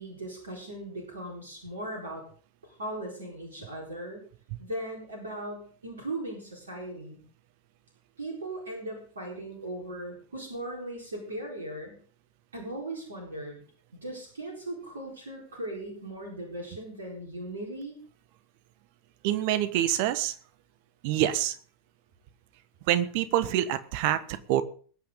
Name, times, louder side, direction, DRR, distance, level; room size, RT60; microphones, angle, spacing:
voice 1, 0.0-2.3 2.6-4.2 4.6-7.2 8.2-12.0 12.5-13.6 13.9-18.0, right 1 dB, 75° right, -1 dB, 4.1 m, -38 dB
voice 2, 19.2-20.3 21.0-21.5 22.9-24.6, right 12 dB, 55° right, 12 dB, 1.3 m, -26 dB
20.5 x 8.8 x 3.8 m, 0.43 s
figure-of-eight pair, 85°, 0 cm